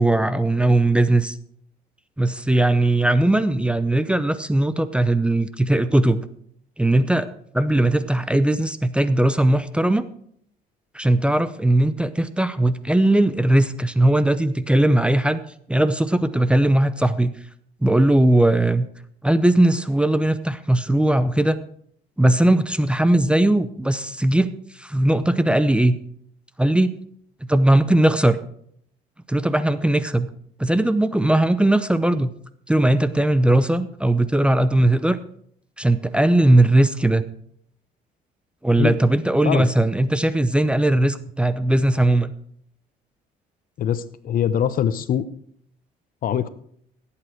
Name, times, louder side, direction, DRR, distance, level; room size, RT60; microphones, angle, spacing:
voice 1, 0.0-1.4 2.2-6.3 6.8-7.3 7.5-10.1 10.9-15.4 15.7-17.3 17.8-18.9 19.2-21.6 22.2-26.0 26.6-26.9 27.4-28.4 29.3-30.3 30.6-32.3 32.7-35.2 35.8-37.2 38.6-42.3, right 1 dB, 5° right, 13 dB, 0.6 m, -19 dB
voice 2, 43.8-45.2 46.2-46.5, left 9 dB, 55° left, 14 dB, 0.9 m, -22 dB
16.0 x 8.6 x 4.5 m, 0.65 s
cardioid pair, 110°, 17 cm